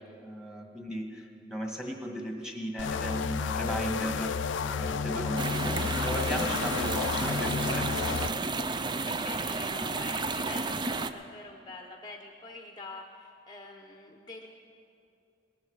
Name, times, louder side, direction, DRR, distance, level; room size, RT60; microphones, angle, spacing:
voice 1, 0.0-8.3, equal, 5° right, 1 dB, 1.5 m, -36 dB
sound 1, 2.8-8.3, left 5 dB, 80° left, 0.4 m, -31 dB
sound 2, 5.4-11.1, right 3 dB, 25° right, 0.4 m, -32 dB
voice 2, 8.8-14.5, left 2 dB, 20° left, 3 dB, 0.7 m, -45 dB
18.5 x 13.5 x 4.8 m, 2.6 s
head